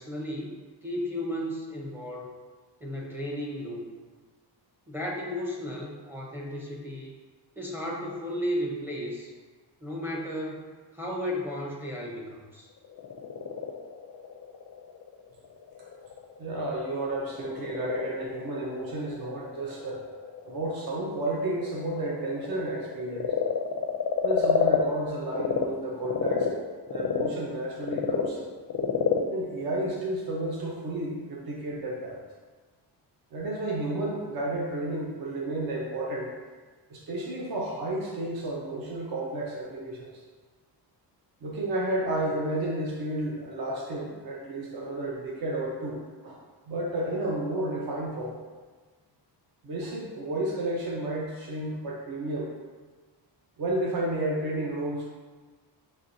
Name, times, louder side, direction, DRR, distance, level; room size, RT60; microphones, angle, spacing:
voice 1, 0.0-2.3 2.8-3.9 4.9-7.1 7.6-9.3 9.8-10.6 10.9-12.7, equal, 5° right, -4 dB, 0.6 m, -34 dB
Frog, 12.8-25.6 26.0-30.7, left 7 dB, 45° left, 0.4 m, -30 dB
voice 2, 16.4-20.0 20.4-23.3 24.2-26.5 26.9-28.4 29.3-32.2 33.3-36.3 36.9-40.2 41.4-46.4 46.7-48.4 49.6-52.5 53.6-55.1, right 1 dB, 55° right, -3 dB, 0.8 m, -32 dB
6.2 x 3.1 x 2.6 m, 1.4 s
wide cardioid pair, 170°, 44 cm